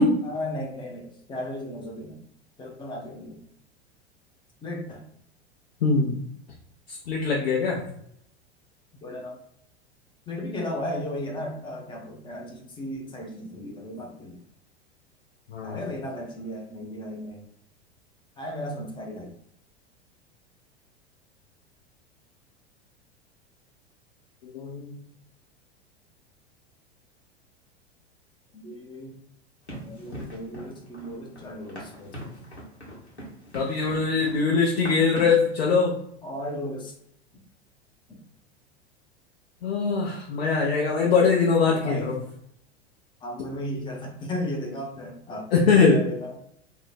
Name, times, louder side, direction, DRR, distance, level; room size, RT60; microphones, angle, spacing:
voice 1, 0.2-2.2 2.6-3.4 4.6-5.0 9.0-9.4 10.3-14.4 15.6-17.4 18.4-19.3 28.5-29.2 29.8-32.3 36.2-36.9 38.1-38.2 41.8-42.1 43.2-46.3, left 1 dB, 15° left, 0 dB, 0.5 m, -35 dB
voice 2, 5.8-6.2 6.9-7.9 15.5-15.8 24.4-25.0 33.5-36.0 39.6-42.2 45.5-46.0, left 4 dB, 65° left, -2 dB, 0.6 m, -22 dB
Run, 29.7-35.5, equal, 85° left, 1.0 m, -41 dB
2.6 x 2.1 x 3.3 m, 0.71 s
figure-of-eight pair, 85°, 32 cm